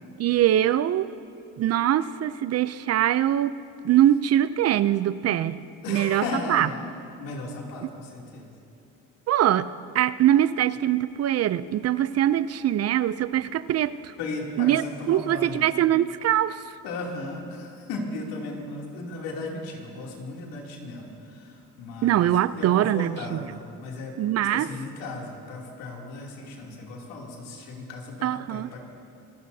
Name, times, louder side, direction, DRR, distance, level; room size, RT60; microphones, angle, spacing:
voice 1, 0.2-1.1 1.6-3.6 3.8-5.6 5.9-6.7 7.8-7.9 9.3-14.1 14.6-16.6 22.0-23.4 24.2-24.7 28.2-28.7, right 12 dB, 45° right, 15 dB, 0.5 m, -23 dB
voice 2, 5.8-6.8 7.2-8.5 14.2-15.6 16.8-24.1 24.5-28.8, left 2 dB, 80° left, -1 dB, 2.9 m, -36 dB
27.0 x 15.5 x 2.8 m, 2.5 s
supercardioid pair, 85°, 34 cm